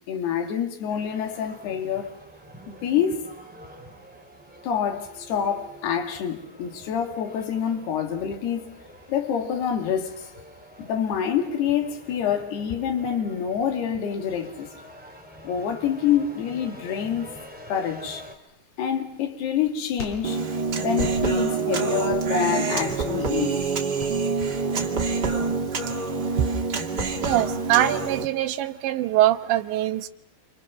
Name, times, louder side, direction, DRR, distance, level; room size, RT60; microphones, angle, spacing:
voice 1, 0.1-2.2 2.7-3.3 4.6-8.7 9.1-10.3 10.8-14.7 15.4-17.3 17.7-18.2 18.8-20.4 20.8-23.6, left 8 dB, 55° left, 4.3 m, -27 dB
sound 1, 0.9-18.3, equal, ahead, 2.4 m, -46 dB
sound 2, 16.8-25.1, left 2 dB, 30° left, 4.8 m, -43 dB
Human voice, 20.2-28.2, right 4 dB, 40° right, 1.4 m, -26 dB
voice 2, 27.2-30.1, right 13 dB, 70° right, 3.1 m, -23 dB
29.0 x 28.5 x 6.0 m
omnidirectional pair, 5.8 m